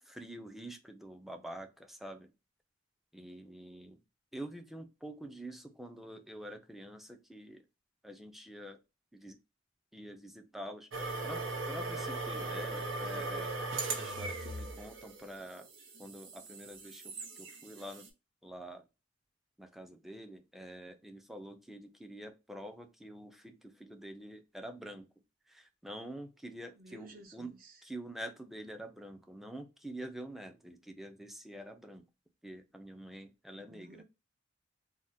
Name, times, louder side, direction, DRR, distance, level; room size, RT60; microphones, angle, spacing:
voice 1, 0.0-2.3 3.1-4.0 4.3-7.6 8.0-8.8 9.1-9.4 9.9-13.5 14.0-15.7 16.0-18.1 18.4-18.9 19.6-25.1 25.5-27.5 27.8-32.0 32.4-34.0, right 1 dB, ahead, 0.4 m, -47 dB
sound 1, 10.9-18.1, right 3 dB, 85° right, 0.8 m, -39 dB
voice 2, 26.8-27.7 33.5-34.0, right 2 dB, 50° right, 0.7 m, -54 dB
3.5 x 2.2 x 2.6 m
head